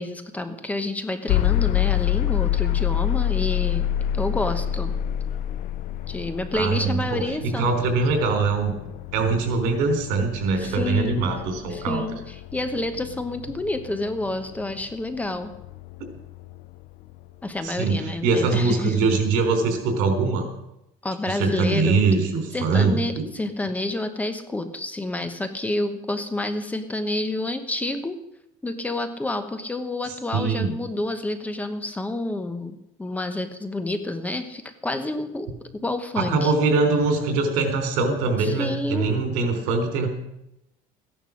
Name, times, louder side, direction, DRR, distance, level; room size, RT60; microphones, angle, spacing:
voice 1, 0.0-3.9 4.1-4.9 6.1-7.8 10.6-11.3 11.7-12.2 12.5-15.5 17.4-19.0 21.0-22.0 22.5-28.2 28.6-35.5 35.8-36.5 38.4-39.2, left 2 dB, 10° left, 9 dB, 1.0 m, -29 dB
sound 1, 1.3-17.2, left 11 dB, 60° left, 0.6 m, -28 dB
voice 2, 6.5-8.7 9.1-12.0 17.6-20.5 21.3-23.2 30.3-30.7 36.2-40.1, right 4 dB, 85° right, 5 dB, 3.6 m, -23 dB
15.0 x 10.5 x 6.4 m, 0.87 s
cardioid pair, 145°, 15 cm